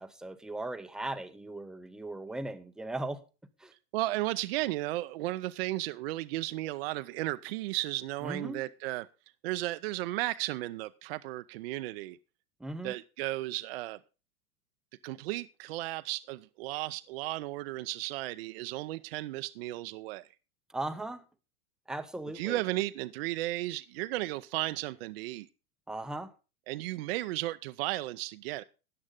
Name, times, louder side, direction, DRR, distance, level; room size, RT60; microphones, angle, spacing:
voice 1, 0.0-3.2 3.6-3.7 8.2-8.6 12.6-12.9 20.7-21.2 21.9-22.6 25.9-26.3, right 2 dB, ahead, 0.6 m, -38 dB
voice 2, 3.9-9.1 9.4-12.2 12.8-14.0 15.0-20.3 22.3-25.5 26.7-28.6, right 17 dB, 45° right, 0.6 m, -34 dB
13.5 x 9.6 x 3.7 m
hypercardioid pair, 115°, 44 cm